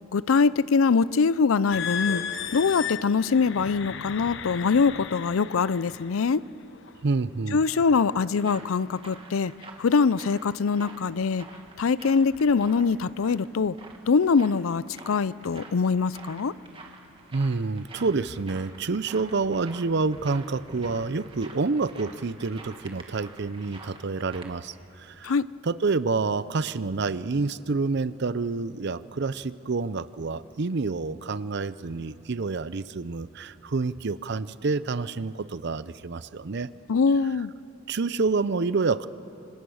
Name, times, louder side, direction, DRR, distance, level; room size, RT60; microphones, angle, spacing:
voice 1, 0.1-2.2 2.5-6.4 7.5-9.5 9.8-11.4 11.8-13.7 14.1-16.5 25.2-25.5 36.9-37.5, left 5 dB, 85° left, 19 dB, 0.5 m, -23 dB
sound 1, 1.7-6.2 6.9-7.1 7.7-8.0, left 7 dB, 60° left, 0.9 m, -35 dB
voice 2, 7.0-7.6 17.3-24.7 25.2-25.3 25.6-36.7 37.9-39.1, right 4 dB, 55° right, 16 dB, 0.6 m, -28 dB
sound 2, 7.5-24.5, right 3 dB, 25° right, 1.9 m, -48 dB
25.5 x 25.0 x 6.4 m, 2.8 s
head